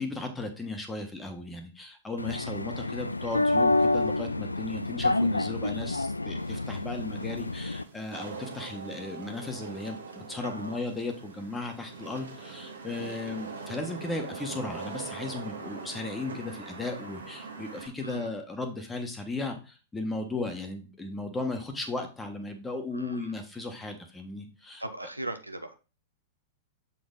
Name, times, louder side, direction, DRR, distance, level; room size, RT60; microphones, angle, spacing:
voice 1, 0.0-24.8, left 2 dB, 10° left, 4 dB, 1.4 m, -36 dB
sound 1, 2.2-7.8, left 2 dB, 85° left, 0.3 m, -28 dB
Wind / Rain, 6.4-17.9, right 4 dB, 70° right, 1.6 m, -42 dB
voice 2, 10.4-10.8 18.0-18.3 22.9-23.4 24.8-25.7, right 1 dB, 90° right, 7 dB, 0.8 m, -38 dB
7.5 x 4.3 x 3.9 m, 0.32 s
figure-of-eight pair, 100°, 0 cm